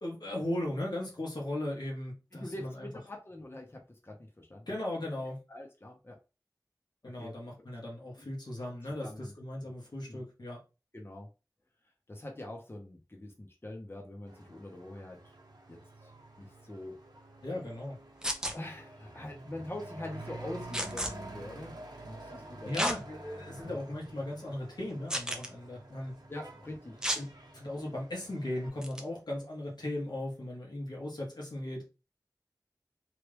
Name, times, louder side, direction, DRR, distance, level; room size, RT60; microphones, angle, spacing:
voice 1, 0.0-2.9 4.7-5.4 7.0-10.6 17.4-18.0 22.7-26.1 27.1-27.3 27.5-31.8, left 1 dB, 90° left, 1.2 m, -37 dB
voice 2, 2.3-4.7 5.5-6.2 7.1-7.7 8.2-8.3 8.8-9.3 9.6-9.7 10.1-10.2 10.9-11.3 12.1-15.3 15.7-16.1 16.4-17.0 18.5-22.7 23.6-23.8 26.3-27.0, left 1 dB, 35° left, 0.8 m, -44 dB
Truck / Accelerating revving vroom, 14.3-28.7, right 2 dB, 80° right, 0.8 m, -49 dB
sound 1, 18.2-18.5 20.7-21.1 22.7-23.0 23.6-23.7 25.1-25.5 27.0-27.2 28.8-29.0, equal, 10° right, 0.6 m, -32 dB
3.0 x 2.5 x 3.3 m
wide cardioid pair, 55°, 7 cm